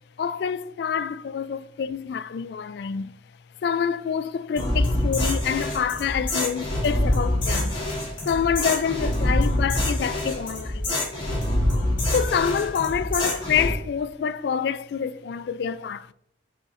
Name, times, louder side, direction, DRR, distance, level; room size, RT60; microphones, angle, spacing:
voice 1, 0.2-3.1 3.6-7.8 8.3-10.9 12.1-16.1, left 7 dB, 65° left, 0.3 m, -27 dB
sound 1, 4.6-13.7, left 1 dB, 25° left, 2.2 m, -25 dB
7.9 x 5.0 x 2.5 m
head